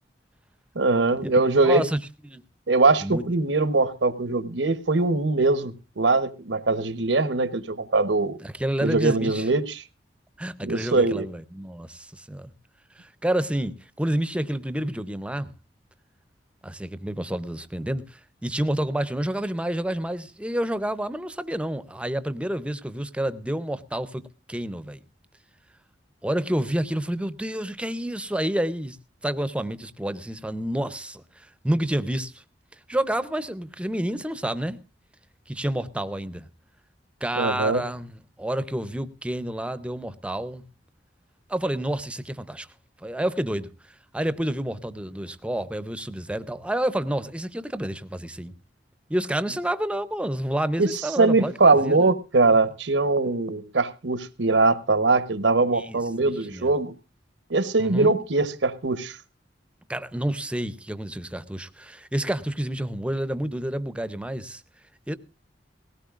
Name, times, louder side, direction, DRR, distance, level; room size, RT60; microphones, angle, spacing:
voice 1, 0.7-1.8 2.7-8.4 8.8-9.8 10.6-11.3 37.4-37.8 50.8-50.9 51.2-56.9 57.5-59.2, right 3 dB, 90° right, 1.0 m, -22 dB
voice 2, 1.6-2.0 2.2-2.4 3.0-3.2 8.4-9.5 10.4-12.5 13.0-15.5 16.6-24.2 24.5-25.0 26.2-29.0 29.2-32.4 32.9-34.8 35.5-36.5 37.2-40.6 41.5-42.7 43.0-48.5 49.1-52.1 55.7-56.7 57.8-58.2 59.9-64.6 65.1-65.2, right 1 dB, 5° right, 0.6 m, -29 dB
19.0 x 17.0 x 2.4 m
head